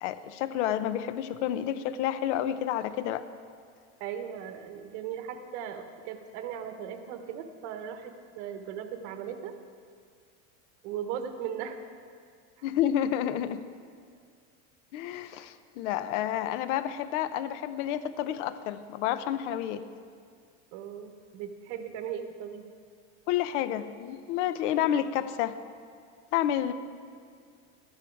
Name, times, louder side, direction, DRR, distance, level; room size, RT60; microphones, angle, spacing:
voice 1, 0.0-3.2 12.6-13.6 14.9-19.8 23.3-25.6 26.3-26.7, left 11 dB, 80° left, 13 dB, 0.7 m, -30 dB
voice 2, 4.0-9.5 10.8-11.8 20.7-22.7, right 8 dB, 70° right, 7 dB, 1.2 m, -38 dB
12.5 x 10.5 x 4.7 m, 2.2 s
supercardioid pair, 135°, 35 cm